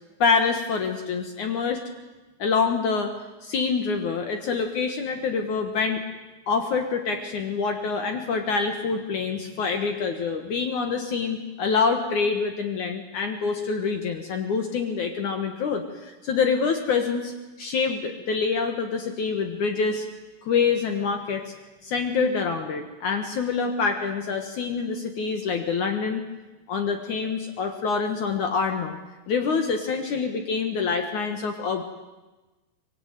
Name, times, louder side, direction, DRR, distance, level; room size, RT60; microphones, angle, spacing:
voice 1, 0.2-1.8 2.4-3.1 3.4-6.0 6.5-17.3 17.6-20.1 20.4-21.5 21.8-26.2 26.7-29.0 29.3-31.8, left 5 dB, 75° left, 6 dB, 1.7 m, -26 dB
24.0 x 23.5 x 9.3 m, 1.2 s
omnidirectional pair, 5.9 m